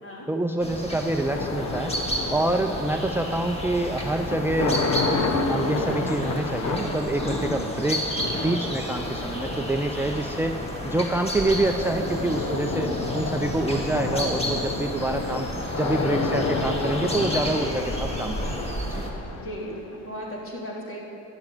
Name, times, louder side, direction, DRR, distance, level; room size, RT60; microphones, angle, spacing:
voice 1, 0.3-2.0 2.3-4.8 5.5-10.6 10.8-15.5 15.7-18.4 18.9-19.0, right 2 dB, 10° right, 5 dB, 0.5 m, -26 dB
sound 1, 0.6-19.1, equal, 20° left, 1.9 m, -32 dB
sound 2, 1.3-20.3, left 3 dB, 60° left, 1.1 m, -30 dB
voice 2, 19.2-21.0, equal, 45° left, -5 dB, 3.7 m, -36 dB
12.0 x 7.4 x 9.1 m, 2.9 s
cardioid pair, 90°, 30 cm